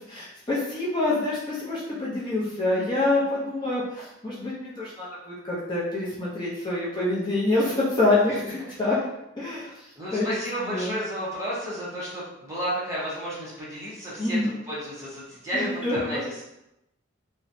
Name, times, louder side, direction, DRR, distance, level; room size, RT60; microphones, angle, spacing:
voice 1, 0.1-8.4 8.8-9.0 9.4-9.7 10.1-10.3 10.7-10.9 14.2-14.5 15.5-16.2, left 2 dB, 20° left, -8 dB, 0.7 m, -26 dB
voice 2, 10.0-16.4, equal, 15° right, -8 dB, 0.8 m, -32 dB
3.0 x 2.3 x 2.6 m, 0.87 s
head